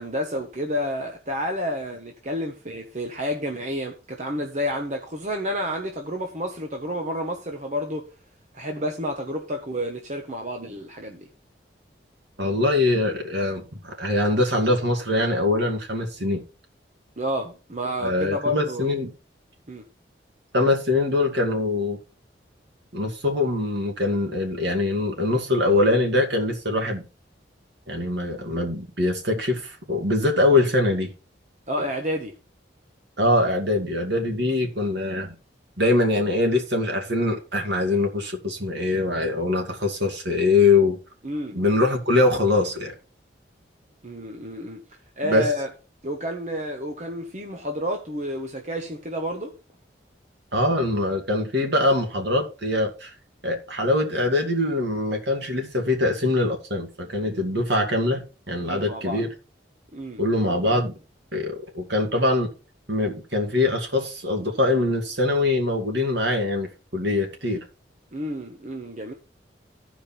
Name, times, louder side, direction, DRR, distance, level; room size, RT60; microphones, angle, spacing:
voice 1, 0.0-8.0 8.5-11.3 17.2-18.9 19.7-19.8 31.7-32.3 41.2-41.6 44.0-44.8 45.2-45.7 46.0-49.6 58.6-59.2 59.9-60.2 68.1-69.1, equal, 40° right, 1.1 m, -30 dB
voice 2, 12.4-16.4 18.0-19.1 20.5-22.0 22.9-27.0 27.9-31.1 33.2-35.3 35.8-41.0 41.5-42.9 45.2-45.5 50.5-53.1 53.4-59.3 60.2-60.9 61.3-62.5 62.9-67.6, left 2 dB, 70° right, 2.3 m, -23 dB
14.0 x 5.1 x 4.4 m
head